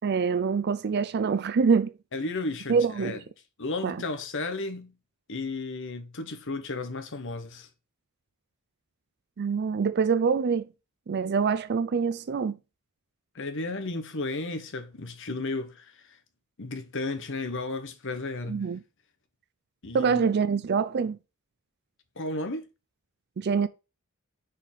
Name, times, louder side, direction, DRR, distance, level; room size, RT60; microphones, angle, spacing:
voice 1, 0.0-1.9 2.7-3.2 3.8-4.0 9.4-10.6 11.1-12.6 18.5-18.8 19.9-21.2 23.4-23.7, right 5 dB, 50° right, 0.4 m, -25 dB
voice 2, 2.1-3.2 3.6-4.9 5.3-7.7 13.3-16.2 16.6-18.7 19.8-20.2 22.2-22.7, left 3 dB, 60° left, 1.1 m, -34 dB
6.5 x 4.1 x 5.4 m
head